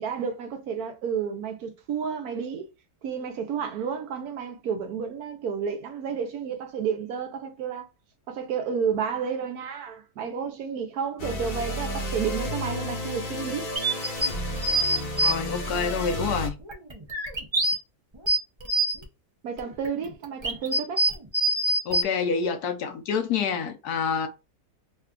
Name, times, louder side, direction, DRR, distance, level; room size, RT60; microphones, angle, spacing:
voice 1, 0.0-2.7 3.0-7.9 8.3-13.7 19.4-21.0, right 6 dB, 70° right, 1.1 m, -31 dB
sound 1, 11.2-16.5, equal, 40° left, 0.8 m, -32 dB
sound 2, 13.7-15.3 15.8-15.9 16.6-17.7 18.1-19.0 19.6-22.0, right 1 dB, 40° right, 0.4 m, -25 dB
voice 2, 15.2-16.6 21.9-24.3, left 6 dB, 75° left, 1.1 m, -27 dB
3.2 x 2.3 x 3.6 m
omnidirectional pair, 1.8 m